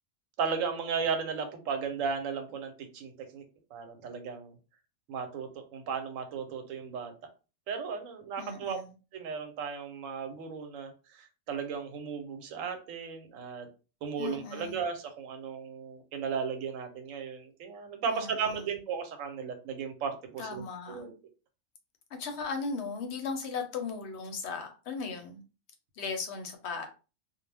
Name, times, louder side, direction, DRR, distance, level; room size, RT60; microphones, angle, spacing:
voice 1, 0.4-3.4 3.7-4.5 5.1-7.1 7.7-8.8 9.1-13.7 14.0-21.1, right 6 dB, 85° right, 7 dB, 1.0 m, -35 dB
voice 2, 8.4-8.9 14.2-14.8 18.1-18.8 20.4-21.1 22.2-25.4 26.0-26.9, left 4 dB, 65° left, 5 dB, 0.8 m, -37 dB
2.2 x 2.0 x 3.2 m, 0.32 s
omnidirectional pair, 1.3 m